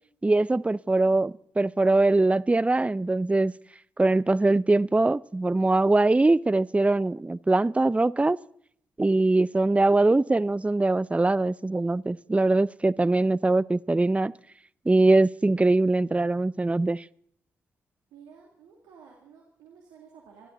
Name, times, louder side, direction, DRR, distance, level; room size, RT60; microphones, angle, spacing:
voice 1, 0.2-3.5 4.0-8.4 9.0-14.3 14.9-17.0, right 2 dB, 20° right, 21 dB, 0.6 m, -22 dB
voice 2, 18.1-20.5, right 6 dB, 80° right, 0 dB, 2.4 m, -52 dB
26.0 x 12.0 x 4.0 m, 0.65 s
hypercardioid pair, 40°, 7 cm